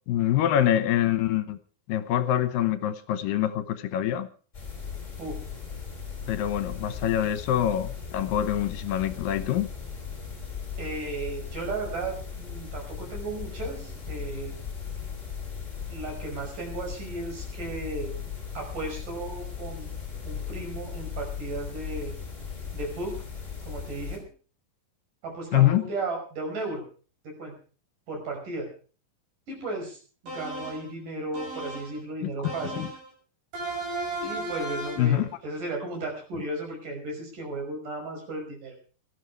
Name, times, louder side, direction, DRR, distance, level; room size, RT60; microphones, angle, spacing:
voice 1, 0.1-1.6 1.9-4.3 6.3-9.7 25.5-25.8 32.8-32.9 35.0-35.3, left 11 dB, 80° left, 12 dB, 2.7 m, -25 dB
sound 1, 4.5-24.2, left 6 dB, 20° left, 4.7 m, -37 dB
voice 2, 10.8-14.5 15.9-18.1 18.5-20.0 20.2-22.1 22.7-23.2 23.7-24.2 25.2-26.8 27.2-27.5 28.1-28.7 29.5-32.8 34.2-38.7, right 2 dB, 65° right, 1 dB, 7.2 m, -35 dB
sound 2, 30.3-30.9 31.3-32.0 32.4-33.1 33.5-35.2, right 1 dB, 85° right, 9.3 m, -35 dB
18.0 x 13.0 x 4.8 m, 0.39 s
omnidirectional pair, 4.1 m